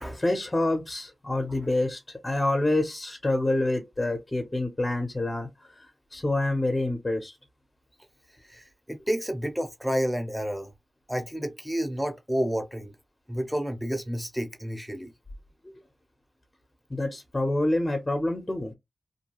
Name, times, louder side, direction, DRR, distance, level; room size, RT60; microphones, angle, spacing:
voice 1, 0.1-5.5 5.8-5.9 6.1-7.4 15.6-15.7 16.9-18.7, left 2 dB, 25° left, 0.8 m, -27 dB
voice 2, 8.5-10.7 11.1-12.9 13.3-15.1, equal, 5° right, 0.8 m, -30 dB
2.6 x 2.2 x 2.9 m
cardioid pair, 65°, 0 cm